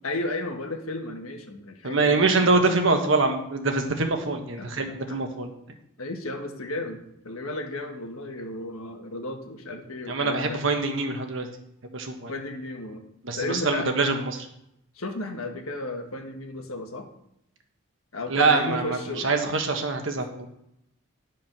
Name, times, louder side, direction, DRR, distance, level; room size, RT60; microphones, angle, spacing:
voice 1, 0.0-2.6 4.6-5.2 6.0-10.6 12.3-13.0 13.3-13.9 14.9-17.1 18.1-19.3, left 2 dB, 85° left, 4 dB, 1.5 m, -34 dB
voice 2, 1.8-5.5 10.1-11.5 11.8-12.3 13.2-14.5 18.3-19.0 19.2-20.5, right 3 dB, 65° right, 4 dB, 1.3 m, -24 dB
10.5 x 4.9 x 6.0 m, 0.79 s
head